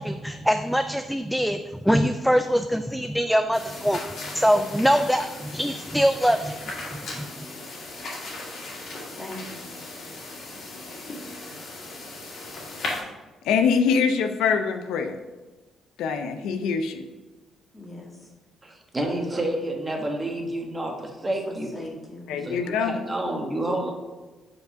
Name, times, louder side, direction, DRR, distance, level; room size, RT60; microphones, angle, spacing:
voice 1, 0.0-4.0 4.3-6.6 6.9-7.3, equal, ahead, 8 dB, 0.3 m, -23 dB
sound 1, 3.5-13.0, left 2 dB, 60° left, 2.0 m, -37 dB
voice 2, 9.2-9.7 17.7-18.1 21.5-22.7, left 1 dB, 20° left, -3 dB, 2.0 m, -40 dB
voice 3, 13.4-15.2 16.0-17.1 22.3-23.0, left 6 dB, 90° left, 7 dB, 0.5 m, -24 dB
voice 4, 18.6-21.7 22.4-23.9, right 1 dB, 20° right, 1 dB, 1.3 m, -29 dB
5.3 x 4.6 x 5.7 m, 1.2 s
cardioid pair, 90°, 0 cm